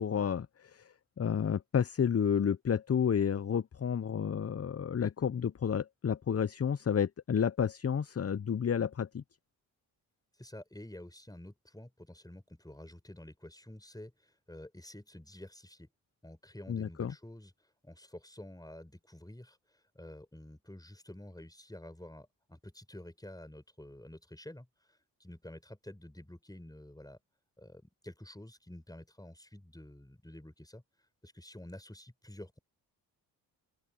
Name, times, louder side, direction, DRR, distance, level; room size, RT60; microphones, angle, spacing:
voice 1, 0.0-9.2 16.7-17.1, left 7 dB, 30° left, 0.9 m, -31 dB
voice 2, 10.3-15.9 16.2-27.2 27.6-30.8 31.2-32.6, left 1 dB, 10° left, 7.3 m, -50 dB
open air
hypercardioid pair, 45°, 45 cm